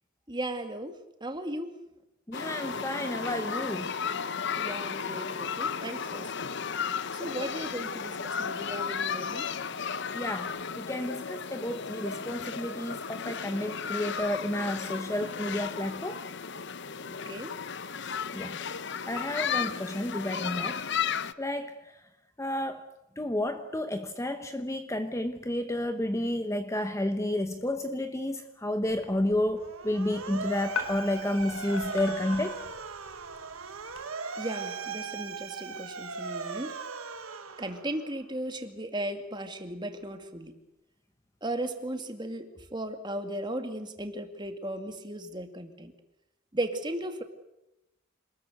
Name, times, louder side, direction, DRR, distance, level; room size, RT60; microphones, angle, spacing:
voice 1, 0.3-0.9 1.2-1.7 4.6-6.5 7.1-9.5 17.1-17.5 34.4-36.7 37.6-40.5 41.4-45.9 46.5-47.2, right 1 dB, 20° right, 2.3 m, -36 dB
sound 1, 2.3-21.3, left 6 dB, 55° left, 0.9 m, -34 dB
voice 2, 2.3-3.9 10.1-16.2 18.3-18.6 19.1-20.9 21.4-21.8 22.4-22.9 23.2-32.6, left 1 dB, 15° left, 1.0 m, -31 dB
sound 2, 28.9-34.0, left 4 dB, 75° left, 4.5 m, -41 dB
Motor vehicle (road) / Siren, 29.6-38.2, right 5 dB, 85° right, 1.7 m, -39 dB
27.5 x 20.5 x 8.2 m
head